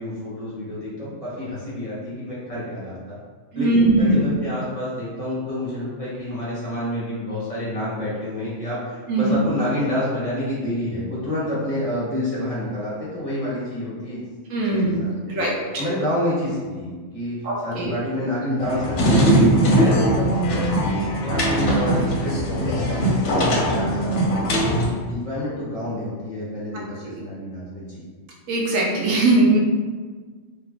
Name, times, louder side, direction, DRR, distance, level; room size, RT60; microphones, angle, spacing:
voice 1, 0.0-3.2 3.5-14.2 14.7-15.5 15.8-17.4 17.6-20.9 21.2-24.7 25.1-28.0, left 1 dB, 30° left, -9 dB, 0.9 m, -28 dB
voice 2, 3.5-4.2 9.1-9.4 14.5-14.9 15.3-15.8 17.4-17.9 28.5-29.6, right 2 dB, 85° right, -3 dB, 1.1 m, -20 dB
sound 1, 18.6-24.9, right 1 dB, 70° left, 0.9 m, -20 dB
2.9 x 2.4 x 3.5 m, 1.5 s
omnidirectional pair, 1.3 m